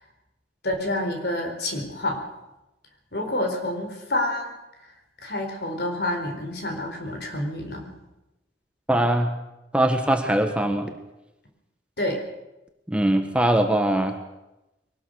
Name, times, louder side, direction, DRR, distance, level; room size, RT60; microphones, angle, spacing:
voice 1, 0.6-2.2 3.1-4.5 5.2-7.9 12.0-12.2, left 1 dB, 65° left, 4 dB, 4.3 m, -28 dB
voice 2, 8.9-9.3 9.7-10.9 12.9-14.1, right 1 dB, 5° right, 5 dB, 1.4 m, -21 dB
23.0 x 18.5 x 6.5 m, 0.97 s
head